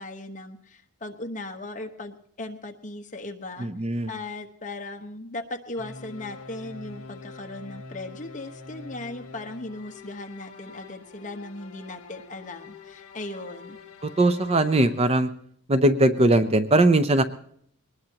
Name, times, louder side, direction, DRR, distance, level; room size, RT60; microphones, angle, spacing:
voice 1, 0.0-3.7 4.1-13.8, left 2 dB, 35° left, 4 dB, 1.2 m, -38 dB
voice 2, 3.6-4.1 14.0-15.3 15.7-17.2, right 1 dB, 30° right, 11 dB, 0.6 m, -20 dB
sound 1, 5.8-15.0, left 3 dB, 65° left, 1.9 m, -45 dB
22.0 x 19.5 x 2.9 m, 0.64 s
head